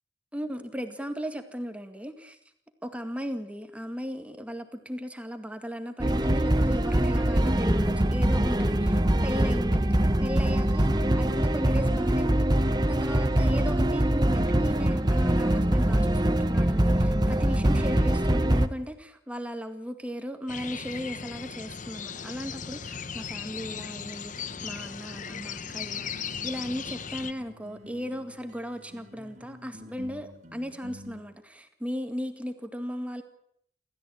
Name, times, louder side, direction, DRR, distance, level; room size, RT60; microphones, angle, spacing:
voice 1, 0.3-2.4 2.8-9.9 10.2-33.2, equal, 5° right, 7 dB, 2.0 m, -36 dB
sound 1, 6.0-18.7, right 1 dB, 20° right, 1.0 m, -23 dB
sound 2, 20.5-27.3, left 7 dB, 45° left, 0.9 m, -37 dB
sound 3, 24.3-31.2, equal, 40° right, 2.9 m, -50 dB
28.0 x 14.0 x 8.8 m, 0.72 s
head